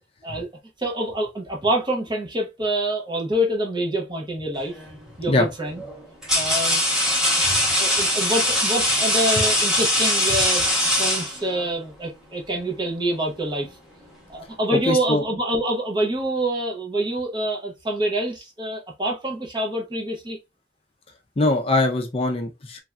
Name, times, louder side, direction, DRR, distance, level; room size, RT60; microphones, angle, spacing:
voice 1, 0.8-4.7 5.2-5.8 6.3-6.8 7.8-10.7 11.0-13.7 14.3-20.4, right 1 dB, 25° right, 0.8 m, -26 dB
sound 1, 4.6-5.0 5.8-11.7, left 1 dB, 5° right, 1.0 m, -22 dB
voice 2, 14.7-15.2 21.4-22.8, left 2 dB, 35° left, 0.5 m, -22 dB
3.2 x 2.6 x 2.3 m
head